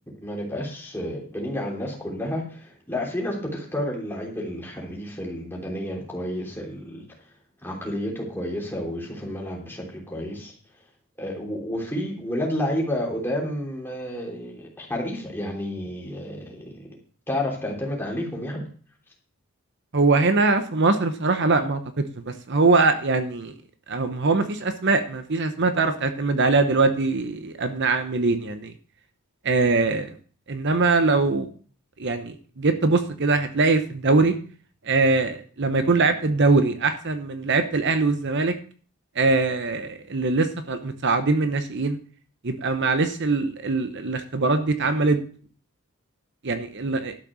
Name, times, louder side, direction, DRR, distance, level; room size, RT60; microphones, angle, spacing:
voice 1, 0.2-7.0 7.6-10.5 11.2-16.9 17.3-18.6, left 1 dB, 10° left, -1 dB, 3.2 m, -30 dB
voice 2, 19.9-23.5 23.9-28.7 29.4-30.1 30.5-31.5 32.0-34.4 34.8-38.5 39.1-42.0 42.4-45.2 46.4-47.2, right 3 dB, 55° right, 8 dB, 0.9 m, -22 dB
12.0 x 6.6 x 6.3 m, 0.43 s
head